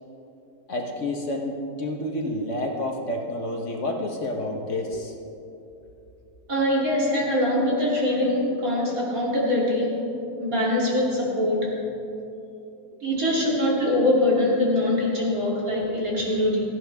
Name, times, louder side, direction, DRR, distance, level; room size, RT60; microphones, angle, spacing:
voice 1, 0.7-5.1, left 1 dB, 50° left, 1 dB, 1.4 m, -29 dB
voice 2, 6.5-10.0 10.4-11.8 13.0-16.6, left 1 dB, 60° right, -5 dB, 3.5 m, -23 dB
17.5 x 14.0 x 3.5 m, 2.8 s
omnidirectional pair, 1.7 m